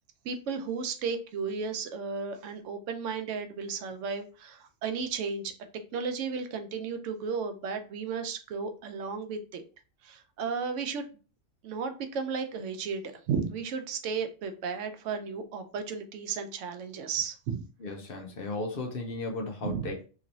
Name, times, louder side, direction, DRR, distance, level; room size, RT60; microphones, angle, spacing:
voice 1, 0.2-5.5 5.9-9.6 10.0-11.0 11.6-17.6 19.6-19.9, right 5 dB, 80° right, 7 dB, 0.9 m, -34 dB
voice 2, 17.8-20.1, left 2 dB, 55° left, 2 dB, 0.8 m, -35 dB
3.0 x 2.9 x 2.6 m, 0.35 s
omnidirectional pair, 1.3 m